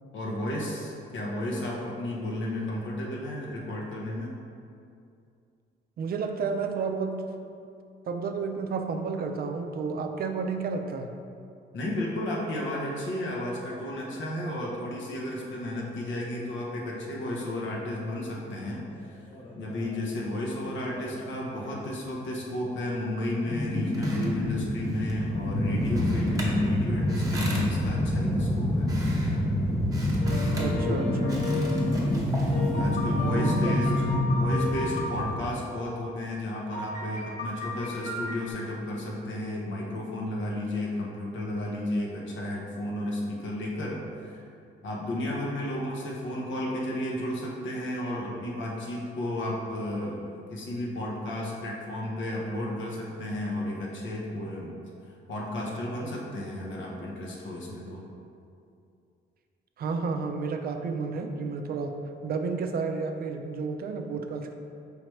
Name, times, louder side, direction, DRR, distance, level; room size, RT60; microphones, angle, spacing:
voice 1, 0.1-4.3 11.7-18.8 19.1-19.2 19.6-28.9 32.5-34.1 34.4-44.5 44.8-54.7 55.3-58.0, left 1 dB, 75° left, -3 dB, 0.8 m, -33 dB
voice 2, 6.0-7.1 8.1-11.1 30.5-31.7 33.3-33.8 59.8-62.0 62.2-64.5, right 4 dB, 50° right, 5 dB, 0.4 m, -31 dB
sound 1, 18.9-19.1 19.3-20.0 20.8-21.8 23.5-35.5, left 1 dB, 25° left, 0.6 m, -27 dB
sound 2, 23.6-33.3, right 1 dB, 15° right, 0.9 m, -42 dB
sound 3, 30.2-31.9 32.5-35.2 36.7-38.5, left 3 dB, 40° left, 1.2 m, -35 dB
4.9 x 3.1 x 3.1 m, 2.5 s
cardioid pair, 90°, 20 cm